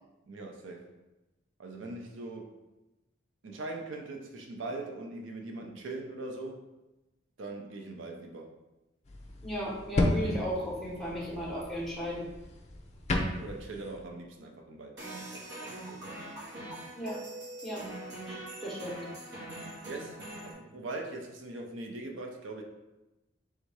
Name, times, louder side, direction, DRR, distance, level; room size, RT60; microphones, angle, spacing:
voice 1, 0.2-1.0 1.6-2.6 3.4-6.7 7.4-8.5 13.4-16.1 16.6-16.8 19.8-22.6, right 2 dB, 80° right, 2 dB, 0.5 m, -41 dB
sound 1, 9.1-14.0, left 1 dB, 35° left, 0.5 m, -34 dB
voice 2, 9.4-12.3 16.9-17.2 17.6-17.8 18.3-18.4 18.6-19.1, equal, ahead, -6 dB, 1.2 m, -35 dB
sound 2, 15.0-20.5, right 1 dB, 65° right, 1.5 m, -43 dB
3.5 x 2.7 x 4.6 m, 1.0 s
head